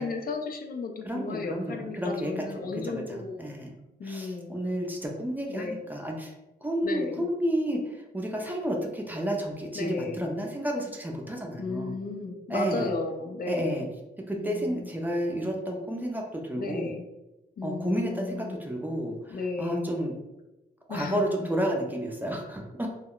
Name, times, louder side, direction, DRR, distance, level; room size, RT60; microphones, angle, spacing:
voice 1, 0.0-3.5 4.0-4.6 5.5-5.8 6.8-7.3 9.7-10.2 11.6-13.8 14.4-14.9 16.6-17.0 17.6-18.6 19.3-19.9 20.9-21.2, left 3 dB, 55° left, 3 dB, 0.4 m, -34 dB
voice 2, 1.0-3.7 4.0-6.3 6.6-11.9 12.5-12.9 13.5-13.9 14.3-16.9 17.6-20.1 20.9-22.9, equal, 10° right, 0 dB, 0.4 m, -31 dB
2.2 x 2.1 x 3.6 m, 0.98 s
wide cardioid pair, 135°, 18 cm